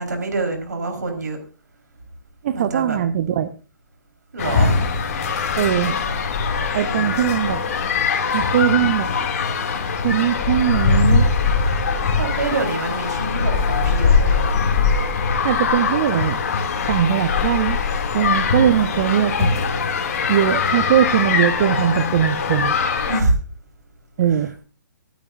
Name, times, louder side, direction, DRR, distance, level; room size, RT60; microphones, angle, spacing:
voice 1, 0.0-1.4 2.5-3.0 4.3-4.7 6.8-7.4 12.2-14.4 18.5-19.2 23.0-23.3, right 3 dB, 60° right, 4 dB, 4.2 m, -26 dB
voice 2, 2.4-3.5 5.6-6.0 6.7-7.6 8.3-9.1 10.0-11.3 15.4-16.4 16.9-17.8 18.1-19.5 20.3-22.8 24.2-24.5, right 10 dB, 35° right, 11 dB, 0.7 m, -20 dB
sound 1, 4.4-23.2, left 5 dB, 45° left, 2.4 m, -21 dB
24.5 x 9.3 x 2.6 m, 0.36 s
figure-of-eight pair, 130°, 10 cm